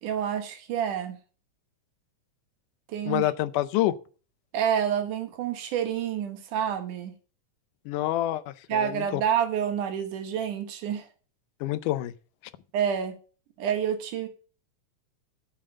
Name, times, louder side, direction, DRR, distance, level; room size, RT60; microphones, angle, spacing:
voice 1, 0.0-1.2 2.9-3.2 4.5-7.1 8.7-11.1 12.7-13.2 13.6-14.3, right 8 dB, 80° right, 2.9 m, -28 dB
voice 2, 3.1-4.0 7.9-9.2 11.6-12.1, left 14 dB, 85° left, 2.2 m, -27 dB
8.6 x 7.6 x 6.4 m
omnidirectional pair, 3.6 m